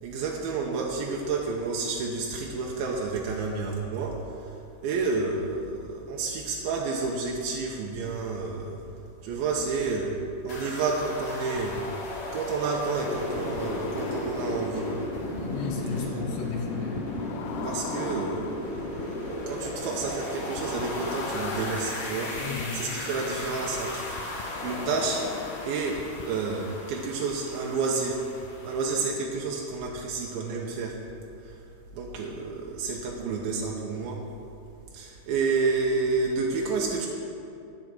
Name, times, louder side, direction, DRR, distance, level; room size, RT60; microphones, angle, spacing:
voice 1, 0.0-4.6 4.8-8.8 9.2-11.8 12.3-14.9 17.6-22.4 22.7-24.2 24.6-25.2 25.6-28.2 28.6-31.0 31.4-31.6 31.9-34.2 34.9-37.1, right 4 dB, 80° right, -1 dB, 2.3 m, -30 dB
sound 1, 10.5-29.1, left 1 dB, 45° left, 2.2 m, -35 dB
sound 2, 11.6-11.8 13.1-14.7 15.2-15.4 17.0-19.0 20.6-22.6 24.2-26.2, left 9 dB, 85° left, 2.6 m, -40 dB
voice 2, 15.4-17.0 22.2-22.8, left 5 dB, 65° left, 0 dB, 2.5 m, -33 dB
13.5 x 4.8 x 7.6 m, 2.7 s
omnidirectional pair, 4.8 m